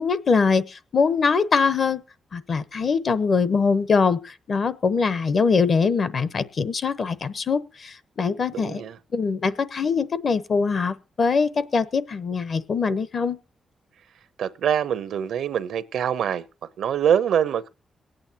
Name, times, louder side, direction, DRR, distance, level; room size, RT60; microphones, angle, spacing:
voice 1, 0.0-2.0 2.3-8.8 9.1-13.4, left 5 dB, 50° left, 0.8 m, -23 dB
voice 2, 8.5-9.0 14.4-16.5 16.8-17.7, right 8 dB, 90° right, 0.7 m, -24 dB
22.5 x 8.9 x 2.8 m
cardioid pair, 105°, 0 cm